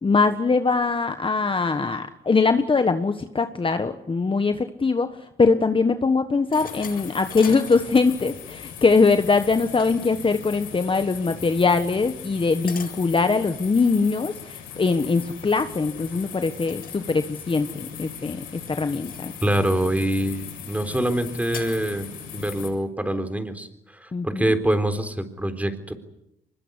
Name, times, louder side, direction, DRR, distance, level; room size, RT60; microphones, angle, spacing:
voice 1, 0.0-5.1 5.4-18.4 18.8-19.3 24.1-24.5, left 4 dB, 25° left, 8 dB, 1.4 m, -22 dB
sound 1, 6.5-22.7, left 8 dB, 90° left, 7.8 m, -39 dB
sound 2, 6.5-8.2 9.4-10.2 12.7-13.0 14.8-15.0 16.7-17.0 17.3-17.9 18.7-19.4 21.5-22.1, left 5 dB, 50° left, 7.9 m, -41 dB
voice 2, 19.4-25.9, right 1 dB, 5° right, 9 dB, 3.9 m, -25 dB
24.0 x 21.5 x 9.9 m, 0.83 s
cardioid pair, 90°, 20 cm